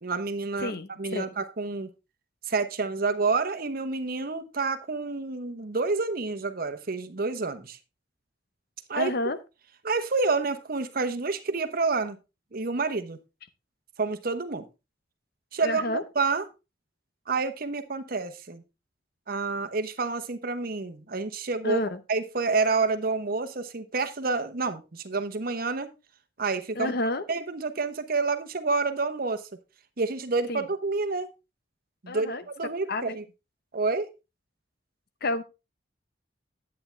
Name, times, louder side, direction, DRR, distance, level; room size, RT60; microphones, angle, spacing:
voice 1, 0.0-1.9 2.5-7.8 8.9-9.1 9.8-12.2 12.5-13.2 14.0-14.7 15.5-16.4 17.3-18.6 19.3-21.8 22.1-25.9 26.4-26.9 27.3-29.4 30.0-31.3 32.0-33.2 33.7-34.1, right 4 dB, 55° right, 10 dB, 1.0 m, -28 dB
voice 2, 0.6-1.3 9.0-9.4 15.6-16.0 21.6-22.0 26.7-27.2 30.5-30.6 32.1-32.4 32.9-33.2 35.2-35.4, left 2 dB, 60° left, 12 dB, 0.9 m, -30 dB
10.5 x 8.7 x 3.3 m, 0.27 s
head